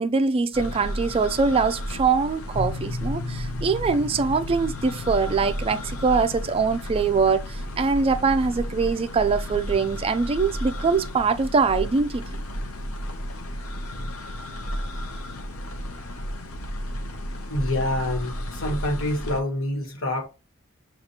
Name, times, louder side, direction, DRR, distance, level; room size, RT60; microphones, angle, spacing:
voice 1, 0.0-12.2, right 4 dB, 25° right, 0.3 m, -23 dB
sound 1, 0.5-19.4, equal, 90° left, 0.7 m, -33 dB
sound 2, 2.5-13.4, left 3 dB, 35° left, 0.8 m, -39 dB
voice 2, 17.5-20.3, left 1 dB, 70° left, 1.3 m, -27 dB
6.6 x 2.4 x 2.9 m
head